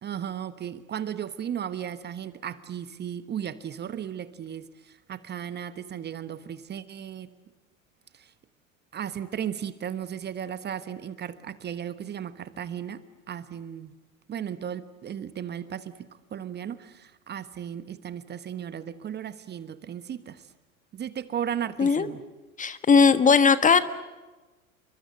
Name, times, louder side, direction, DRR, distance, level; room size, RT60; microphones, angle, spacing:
voice 1, 0.0-7.3 8.1-8.3 8.9-13.9 14.3-20.5 20.9-22.2, right 9 dB, 25° right, 13 dB, 1.2 m, -35 dB
voice 2, 22.6-23.8, left 5 dB, 20° left, 12 dB, 1.5 m, -18 dB
29.5 x 24.0 x 8.0 m, 1.2 s
hypercardioid pair, 95°, 42 cm